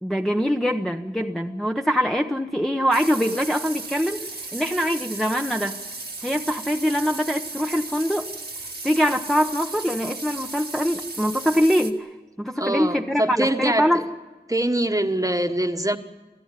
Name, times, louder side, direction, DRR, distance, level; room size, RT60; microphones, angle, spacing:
voice 1, 0.0-4.2 4.5-5.8 6.2-8.3 8.8-12.1 12.4-14.1, equal, ahead, 2 dB, 1.1 m, -23 dB
sound 1, 2.9-11.9, right 3 dB, 70° right, 1.7 m, -35 dB
voice 2, 12.6-14.0 14.5-16.0, right 1 dB, 20° right, 7 dB, 1.5 m, -24 dB
27.0 x 15.5 x 9.9 m, 1.2 s
wide cardioid pair, 50°, 17 cm